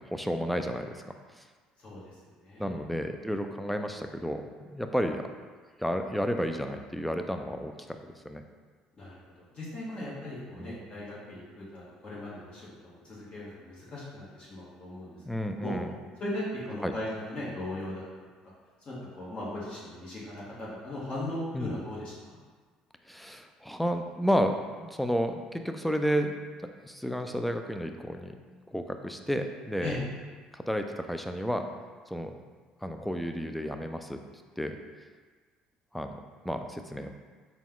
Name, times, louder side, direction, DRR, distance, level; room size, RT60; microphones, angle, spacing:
voice 1, 0.1-1.0 1.4-1.5 2.6-5.3 5.8-7.7 8.0-8.4 10.6-10.8 15.2-15.9 16.8-16.9 21.5-21.7 23.1-26.3 26.6-28.4 28.7-30.0 30.5-31.6 32.1-32.4 32.8-34.2 34.6-34.8 35.9-36.2 36.4-37.1, equal, 5° left, 6 dB, 0.4 m, -31 dB
voice 2, 1.8-2.1 2.4-2.8 9.0-9.2 9.5-15.1 15.5-15.7 16.2-18.0 18.8-22.4 29.8-30.0, left 1 dB, 40° left, -7 dB, 1.4 m, -38 dB
4.0 x 2.4 x 3.8 m, 1.5 s
hypercardioid pair, 65°, 3 cm